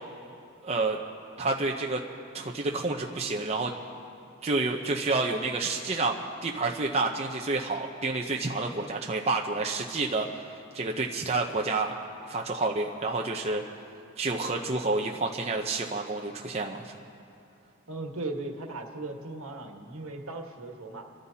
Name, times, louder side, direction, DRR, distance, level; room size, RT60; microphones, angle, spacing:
voice 1, 0.6-1.0 1.4-2.0 2.3-3.7 4.4-6.2 6.4-10.4 10.7-11.9 12.3-13.6 14.2-16.9, right 3 dB, 30° right, 0 dB, 0.7 m, -29 dB
voice 2, 17.9-21.0, right 2 dB, 75° right, 2 dB, 1.6 m, -37 dB
27.5 x 14.0 x 2.8 m, 2.7 s
head